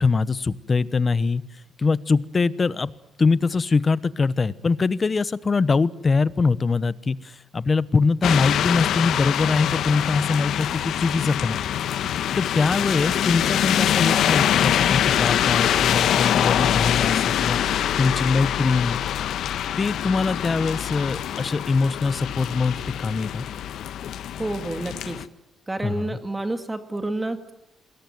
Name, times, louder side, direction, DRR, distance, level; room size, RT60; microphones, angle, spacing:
voice 1, 0.0-1.4 1.8-2.9 3.2-11.6 12.4-19.0 19.8-23.4 25.8-26.2, left 4 dB, 30° left, 17 dB, 1.0 m, -23 dB
sound 1, 8.2-25.3, left 10 dB, 70° left, 1.2 m, -24 dB
voice 2, 24.4-25.3 25.7-27.5, right 2 dB, 10° right, 8 dB, 2.3 m, -29 dB
27.5 x 21.5 x 9.3 m, 0.88 s
cardioid pair, 135°, 0 cm